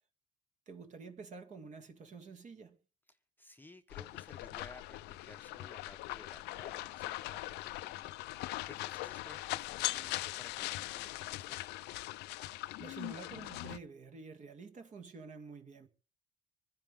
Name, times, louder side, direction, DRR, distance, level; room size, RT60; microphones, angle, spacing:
voice 1, 0.7-2.8 12.5-15.9, right 4 dB, 45° right, 2.3 m, -49 dB
voice 2, 3.1-8.1 8.6-11.7, left 2 dB, 10° left, 1.0 m, -56 dB
sound 1, 3.9-13.8, left 18 dB, 90° left, 0.6 m, -41 dB
25.5 x 10.5 x 3.6 m
cardioid pair, 110°, 17 cm